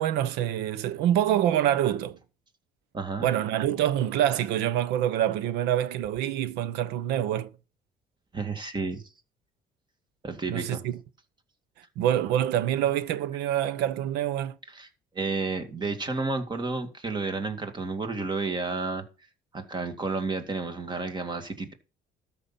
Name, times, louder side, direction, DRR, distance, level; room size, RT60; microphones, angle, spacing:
voice 1, 0.0-2.2 3.2-7.5 10.5-10.9 12.0-14.5, right 11 dB, 90° right, 0.9 m, -26 dB
voice 2, 2.9-3.2 8.3-9.1 10.2-10.8 14.7-14.9 15.1-19.0 19.5-21.7, right 3 dB, 25° right, 2.2 m, -31 dB
13.0 x 5.8 x 5.8 m
cardioid pair, 110°, 17 cm